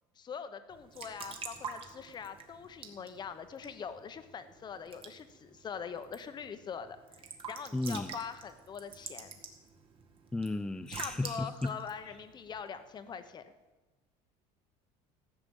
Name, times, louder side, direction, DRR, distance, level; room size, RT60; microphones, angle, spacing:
voice 1, 0.1-9.4 10.9-13.4, left 6 dB, 30° left, 10 dB, 1.0 m, -43 dB
Raindrop / Drip / Trickle dribble, 0.7-13.2, right 5 dB, 40° right, 1.9 m, -48 dB
voice 2, 7.7-8.1 10.3-11.7, left 2 dB, 5° left, 13 dB, 0.4 m, -34 dB
14.5 x 6.9 x 8.9 m, 1.2 s
cardioid pair, 135°, 14 cm